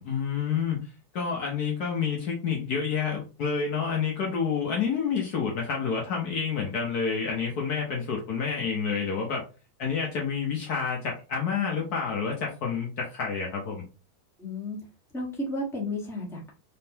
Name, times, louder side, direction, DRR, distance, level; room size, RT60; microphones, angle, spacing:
voice 1, 0.0-9.4 9.8-13.8, left 6 dB, 60° left, -1 dB, 1.3 m, -29 dB
voice 2, 14.4-14.8 15.1-16.5, left 1 dB, ahead, -4 dB, 1.2 m, -33 dB
4.3 x 3.7 x 2.8 m, 0.33 s
omnidirectional pair, 2.1 m